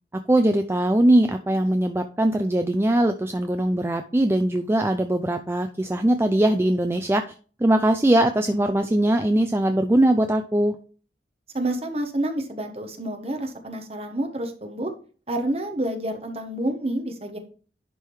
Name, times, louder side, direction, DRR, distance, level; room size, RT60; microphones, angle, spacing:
voice 1, 0.3-7.2 7.6-10.8, right 1 dB, 15° right, 6 dB, 0.4 m, -21 dB
voice 2, 11.5-14.9 15.3-17.4, right 1 dB, 35° right, 4 dB, 1.2 m, -28 dB
11.0 x 3.7 x 4.7 m, 0.39 s
head